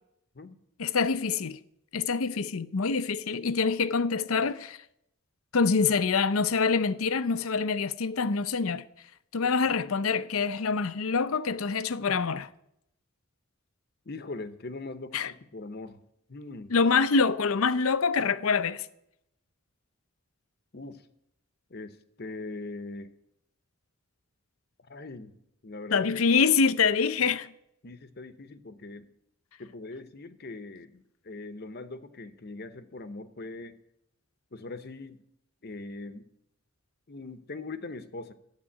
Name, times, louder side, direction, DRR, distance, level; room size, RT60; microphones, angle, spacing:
voice 1, 0.8-1.6 1.9-4.8 5.5-8.8 9.3-12.5 15.1-15.3 16.7-18.9 25.9-27.5, left 5 dB, 75° left, 0.6 m, -25 dB
voice 2, 14.0-16.0 16.3-16.7 20.7-21.1 21.7-23.1 24.9-25.3 25.6-26.1 27.8-29.1 29.6-33.8 34.5-35.2 35.6-36.3 37.1-38.3, left 3 dB, 45° left, 0.9 m, -41 dB
11.5 x 8.2 x 9.7 m
head